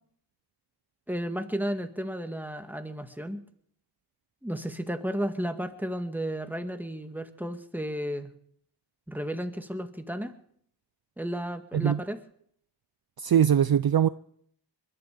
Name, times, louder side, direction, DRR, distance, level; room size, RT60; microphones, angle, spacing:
voice 1, 1.1-3.4 4.4-8.3 9.1-10.3 11.2-12.2, equal, 5° right, 1.9 m, -33 dB
voice 2, 13.2-14.1, right 9 dB, 55° right, 0.5 m, -22 dB
22.0 x 12.5 x 5.2 m
cardioid pair, 40°, 44 cm